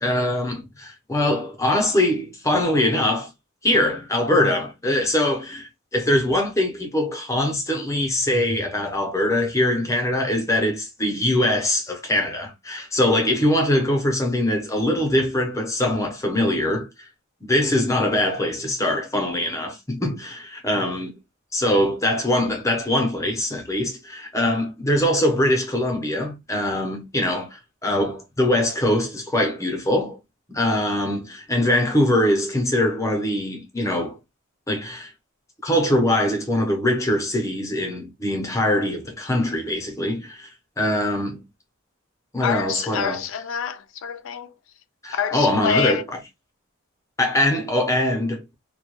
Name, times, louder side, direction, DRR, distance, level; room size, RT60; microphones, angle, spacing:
voice 1, 0.0-3.3 3.6-17.1 17.4-21.1 21.5-30.2 30.5-34.2 34.7-35.1 35.6-40.5 40.8-41.4 42.3-43.2 45.0-46.0 47.2-48.5, left 1 dB, 15° left, 0.6 m, -22 dB
voice 2, 42.4-44.5 45.1-46.0, left 7 dB, 70° left, 0.4 m, -26 dB
2.2 x 2.1 x 2.9 m
head